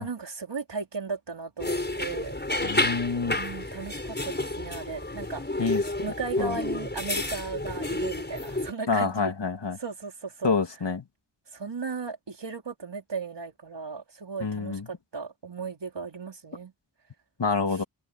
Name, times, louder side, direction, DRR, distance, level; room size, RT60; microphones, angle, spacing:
voice 1, 0.0-2.8 3.3-5.4 6.0-9.3 9.8-10.5 11.5-16.7 17.7-17.9, right 4 dB, 85° right, 4.1 m, -36 dB
sound 1, 1.6-8.7, left 2 dB, 25° left, 4.9 m, -30 dB
voice 2, 2.6-3.4 5.6-5.8 6.4-6.6 8.9-9.8 10.4-11.0 14.4-14.8 17.4-17.8, left 4 dB, 80° left, 2.4 m, -27 dB
wide cardioid pair, 75°, 41 cm